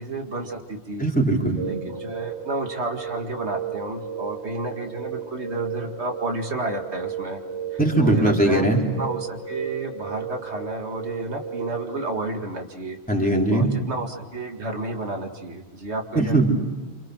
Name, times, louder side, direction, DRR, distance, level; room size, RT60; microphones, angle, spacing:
voice 1, 0.0-1.1 1.7-7.4 7.7-8.6 9.0-13.0 13.5-16.5, right 2 dB, 85° right, 3 dB, 2.4 m, -31 dB
voice 2, 1.0-1.6 7.8-8.8 13.1-13.7 16.2-16.5, right 1 dB, 5° left, -1 dB, 3.8 m, -20 dB
sound 1, 1.6-12.2, right 8 dB, 35° right, 3.1 m, -34 dB
28.0 x 27.0 x 6.3 m, 1.2 s
omnidirectional pair, 1.1 m